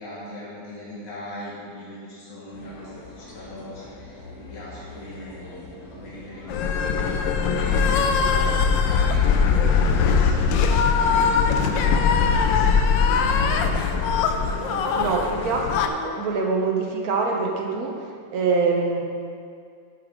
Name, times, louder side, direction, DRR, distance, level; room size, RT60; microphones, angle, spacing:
voice 1, 0.0-13.7 14.1-15.2, left 1 dB, 50° left, -8 dB, 2.1 m, -39 dB
sound 1, 2.5-12.3, left 2 dB, 70° left, 2.1 m, -42 dB
sound 2, 6.5-15.9, left 5 dB, 90° left, 1.3 m, -21 dB
voice 2, 15.0-18.0 18.3-19.0, right 4 dB, 60° right, 1 dB, 1.5 m, -24 dB
9.7 x 8.8 x 3.8 m, 2.3 s
omnidirectional pair, 1.9 m